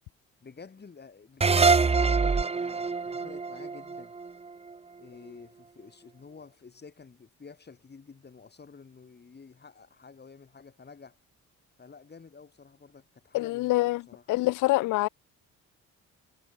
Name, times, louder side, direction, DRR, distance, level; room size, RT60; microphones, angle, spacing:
voice 1, 0.4-4.1 5.0-11.2 11.8-14.3, left 5 dB, 35° left, 5.0 m, -50 dB
sound 1, 1.4-4.7, right 4 dB, 20° right, 0.8 m, -25 dB
voice 2, 13.3-14.0 14.3-15.1, left 19 dB, 90° left, 0.6 m, -25 dB
cardioid pair, 90°, 30 cm